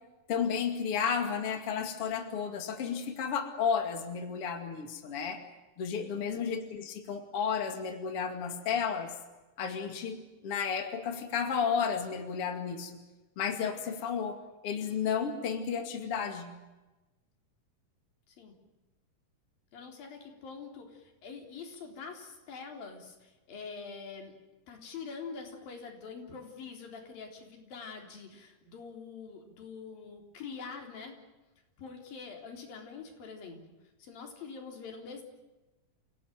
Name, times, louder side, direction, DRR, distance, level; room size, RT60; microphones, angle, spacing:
voice 1, 0.3-5.4 5.8-9.1 9.6-13.0 13.4-14.4 14.6-16.5, left 6 dB, 45° left, 6 dB, 3.0 m, -32 dB
voice 2, 19.7-24.3 24.7-31.2 31.8-33.6 34.0-35.2, left 5 dB, 90° left, 3 dB, 5.6 m, -45 dB
29.5 x 17.0 x 9.2 m, 1.1 s
omnidirectional pair, 4.0 m